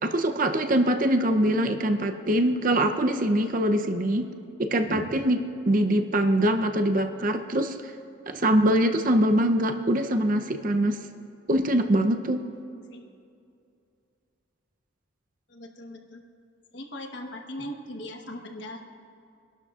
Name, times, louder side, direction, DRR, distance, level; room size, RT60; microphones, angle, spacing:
voice 1, 0.0-4.3 4.6-5.4 5.7-7.8 8.3-11.0 11.5-12.4, right 1 dB, 40° right, 6 dB, 0.7 m, -23 dB
voice 2, 4.8-5.1 12.9-13.1 15.5-16.2 16.7-18.8, left 1 dB, 55° left, 2 dB, 1.2 m, -39 dB
25.0 x 12.0 x 2.5 m, 2.5 s
head